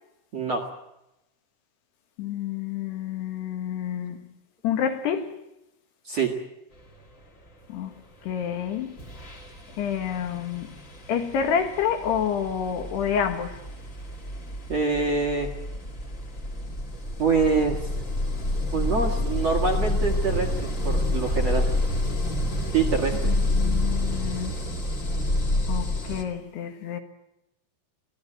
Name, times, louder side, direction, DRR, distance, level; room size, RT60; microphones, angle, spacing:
voice 1, 0.3-0.7 6.0-6.3 14.7-15.5 17.2-17.9 18.7-21.7 22.7-23.3, right 5 dB, 50° right, 2.1 m, -25 dB
voice 2, 2.2-4.2 4.6-5.3 7.7-7.9 8.2-8.9 9.8-10.7 11.1-13.6 23.2-24.7 25.7-27.0, left 8 dB, 65° left, 3.2 m, -28 dB
sound 1, 8.4-8.6 9.0-26.2, left 1 dB, 50° left, 0.9 m, -28 dB
23.5 x 17.0 x 9.0 m
omnidirectional pair, 5.7 m